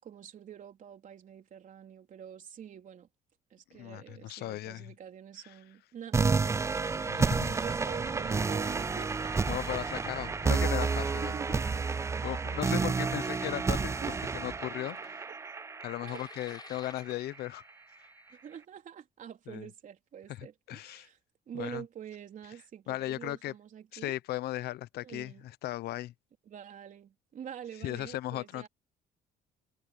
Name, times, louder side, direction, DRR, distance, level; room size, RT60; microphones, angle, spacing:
voice 1, 0.0-3.1 3.5-9.3 10.1-10.4 11.2-11.6 12.7-13.3 14.0-14.2 16.0-16.2 18.3-21.2 21.5-24.2 25.0-25.4 26.5-28.7, right 9 dB, 50° right, 3.7 m, -46 dB
voice 2, 3.7-4.9 5.4-5.5 7.1-7.6 9.5-11.3 12.2-15.0 15.8-17.6 19.5-19.7 20.3-21.1 21.5-21.8 22.9-23.5 23.9-26.1 27.8-28.7, left 15 dB, 70° left, 0.8 m, -37 dB
sound 1, 6.1-17.1, right 4 dB, 15° right, 0.4 m, -30 dB
sound 2, 6.4-11.0 11.5-11.9 12.5-13.3 13.7-14.1 14.8-15.5 16.1-18.4, left 4 dB, 25° left, 6.4 m, -53 dB
cardioid pair, 110°, 17 cm